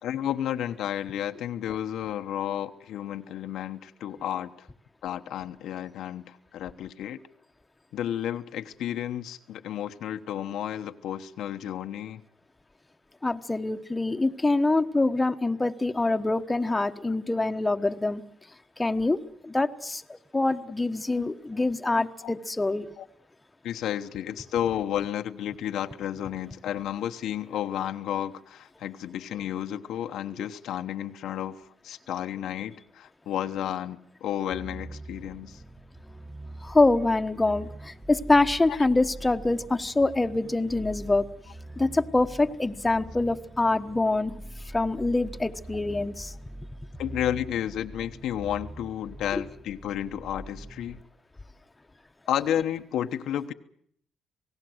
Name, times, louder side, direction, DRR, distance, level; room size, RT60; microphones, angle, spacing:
voice 1, 0.0-4.7 5.0-7.2 7.9-12.2 21.1-21.6 21.9-22.3 23.0-23.1 23.6-35.6 38.7-38.8 47.0-51.0 52.3-53.5, left 10 dB, 80° left, 7 dB, 1.1 m, -32 dB
voice 2, 13.2-18.2 18.8-19.2 19.4-20.0 20.3-22.9 36.6-41.2 41.8-44.4 44.7-46.3 49.3-49.4, left 2 dB, 15° left, 6 dB, 1.2 m, -25 dB
sound 1, 34.5-51.0, right 1 dB, 10° right, 1.3 m, -43 dB
27.5 x 18.0 x 7.9 m, 0.67 s
cardioid pair, 90°, 0 cm